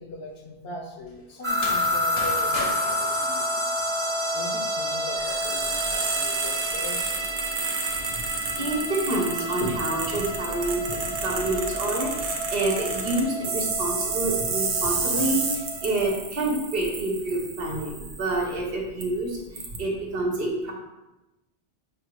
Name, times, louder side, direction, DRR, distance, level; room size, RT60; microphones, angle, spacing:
voice 1, 0.0-3.7 4.3-7.1 18.1-18.2, left 2 dB, 65° left, 0 dB, 0.9 m, -40 dB
sound 1, 1.4-4.3, left 2 dB, 45° left, 0.5 m, -37 dB
sound 2, 1.4-16.1, equal, 35° right, 0.6 m, -30 dB
sound 3, 5.1-18.5 19.0-19.1 19.5-19.8, right 4 dB, 85° right, 0.9 m, -31 dB
voice 2, 8.6-20.7, right 2 dB, 60° right, -1 dB, 0.9 m, -28 dB
5.2 x 2.4 x 3.0 m, 0.98 s
omnidirectional pair, 1.1 m